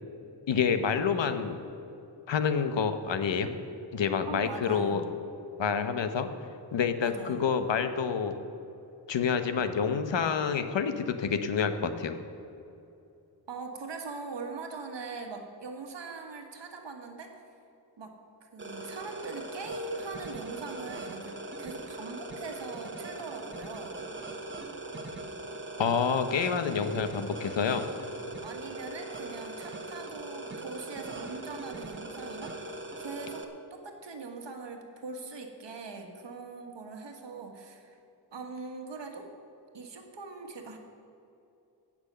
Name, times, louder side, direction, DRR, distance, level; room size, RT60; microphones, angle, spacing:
voice 1, 0.5-1.6 2.3-3.5 3.9-5.0 5.6-6.3 6.7-8.4 9.1-12.2 25.8-27.8, left 6 dB, 80° left, 9 dB, 1.0 m, -28 dB
voice 2, 4.3-5.1 7.0-7.4 13.5-17.3 18.0-24.0 27.6-27.8 28.4-38.0 38.3-39.3 39.7-40.8, right 3 dB, 80° right, 3 dB, 1.5 m, -41 dB
sound 1, 18.6-33.4, right 2 dB, 25° right, 1.0 m, -41 dB
17.0 x 6.2 x 6.7 m, 2.7 s
wide cardioid pair, 150°, 43 cm